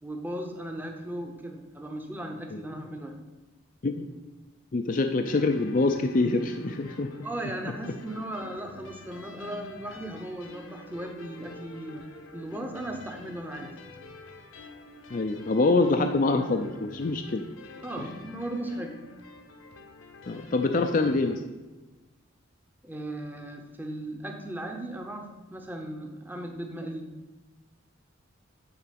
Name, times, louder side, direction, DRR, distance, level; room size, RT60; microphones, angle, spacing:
voice 1, 0.0-3.2 7.2-12.0 12.3-13.7 17.8-19.0 22.8-27.1, right 1 dB, 10° right, 3 dB, 0.8 m, -37 dB
voice 2, 4.7-7.1 15.1-17.4 18.0-18.1 20.3-21.4, left 3 dB, 40° left, 5 dB, 0.4 m, -25 dB
sound 1, 5.2-21.4, left 2 dB, 70° left, 0.9 m, -47 dB
9.7 x 4.0 x 5.9 m, 1.2 s
head